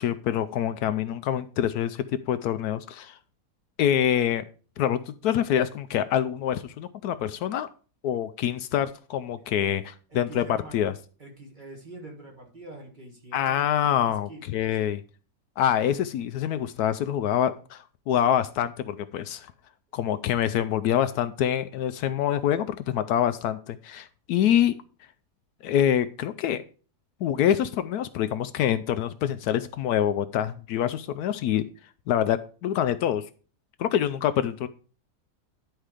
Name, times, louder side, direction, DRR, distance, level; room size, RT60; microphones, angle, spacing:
voice 1, 0.0-3.2 3.8-4.4 4.8-7.7 8.0-10.4 10.7-10.9 13.3-15.0 15.6-19.5 19.9-24.7 25.6-26.6 27.2-31.6 32.1-33.2 33.8-34.7, left 10 dB, 75° left, 11 dB, 1.0 m, -25 dB
voice 2, 10.1-10.8 11.2-14.9, right 2 dB, 30° right, 1 dB, 1.6 m, -45 dB
10.5 x 4.5 x 4.9 m, 0.39 s
omnidirectional pair, 1.7 m